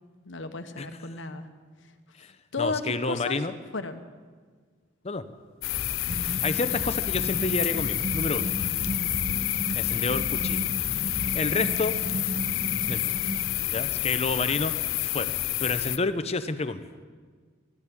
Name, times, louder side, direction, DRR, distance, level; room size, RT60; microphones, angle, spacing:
voice 1, 0.2-1.5 2.5-3.4 3.7-4.0, left 3 dB, 65° left, 9 dB, 1.1 m, -33 dB
voice 2, 2.2-3.6 5.0-5.2 6.2-8.5 9.8-10.7 11.1-11.9 12.9-13.2 13.7-14.7 15.0-15.3 15.6-17.0, left 3 dB, 30° left, 12 dB, 0.7 m, -30 dB
sound 1, 5.6-16.0, left 15 dB, 85° left, 0.4 m, -29 dB
sound 2, 5.8-6.2 6.8-7.2 7.6-8.2 8.8-9.2 9.8-10.2 10.8-11.2, equal, 90° right, 3.8 m, -37 dB
sound 3, 6.1-13.5, right 2 dB, 30° right, 1.3 m, -35 dB
13.5 x 10.5 x 9.9 m, 1.5 s
head